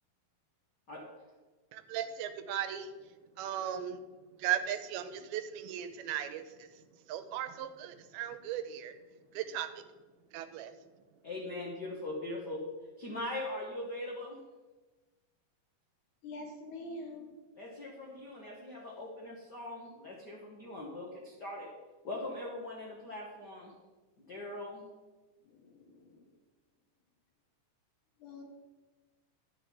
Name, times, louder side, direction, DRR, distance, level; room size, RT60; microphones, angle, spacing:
voice 1, 1.7-2.9 3.4-4.0 4.4-6.8 7.1-8.9 9.3-9.8 10.3-10.7, right 10 dB, 85° right, 10 dB, 2.6 m, -37 dB
voice 2, 11.2-12.6 13.0-14.4 17.5-21.7 22.0-23.7 24.3-24.9, left 1 dB, 85° left, -3 dB, 0.9 m, -41 dB
voice 3, 16.2-17.4 25.5-26.2 28.2-28.4, left 1 dB, 65° left, 2 dB, 2.2 m, -45 dB
11.0 x 6.3 x 4.6 m, 1.2 s
omnidirectional pair, 4.3 m